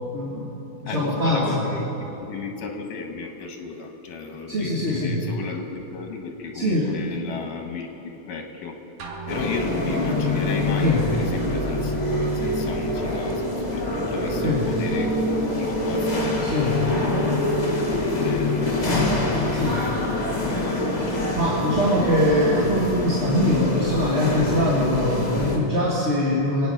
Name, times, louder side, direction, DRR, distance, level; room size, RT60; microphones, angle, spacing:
voice 1, 0.1-1.6 4.5-5.2 6.5-6.9 10.8-11.0 14.4-14.6 16.4-16.8 19.5-19.9 21.0-26.7, left 1 dB, 25° right, -7 dB, 1.6 m, -23 dB
voice 2, 0.9-8.8 9.3-17.2 17.9-21.3, left 5 dB, 80° left, 4 dB, 3.0 m, -34 dB
sound 1, 9.0-10.5, right 3 dB, 60° right, 2.5 m, -39 dB
sound 2, 9.3-25.6, left 1 dB, 65° left, 0.4 m, -25 dB
26.0 x 9.0 x 5.5 m, 3.0 s
omnidirectional pair, 3.8 m